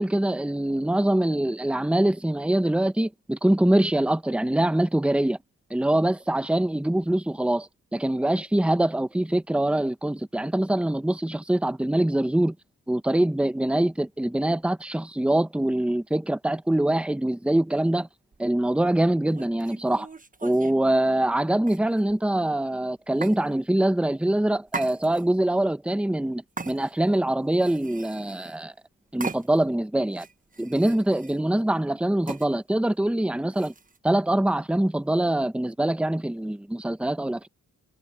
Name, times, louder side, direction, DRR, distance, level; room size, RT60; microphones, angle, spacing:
voice 1, 0.0-5.4 5.7-12.5 12.9-18.1 18.4-20.1 20.4-28.7 29.1-30.3 30.6-33.7 34.0-37.5, right 1 dB, 5° right, 1.0 m, -24 dB
sound 1, 18.3-18.5 19.3-20.8 21.6-22.2 23.2-23.4 24.7-25.4 26.6-27.2 27.5-28.6 29.2-29.7 30.1-31.4 32.3-32.5 33.5-34.0, right 4 dB, 20° right, 1.3 m, -39 dB
cardioid pair, 85°, 35 cm